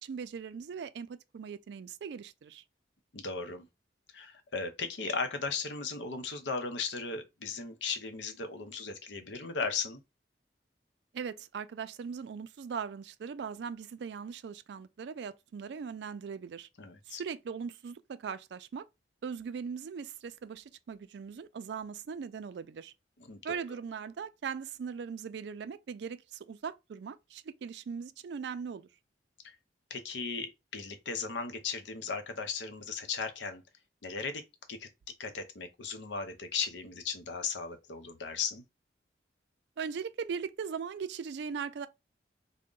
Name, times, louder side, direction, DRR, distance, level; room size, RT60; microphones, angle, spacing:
voice 1, 0.0-2.6 11.1-16.7 17.1-18.8 19.2-22.9 23.4-28.9 39.8-41.9, right 6 dB, 75° right, 0.3 m, -39 dB
voice 2, 3.1-3.7 4.1-10.0 16.8-17.2 23.2-23.6 29.4-29.6 29.9-33.6 34.0-34.4 34.7-34.9 35.2-38.6, left 5 dB, 85° left, 0.7 m, -36 dB
3.6 x 2.1 x 3.7 m
head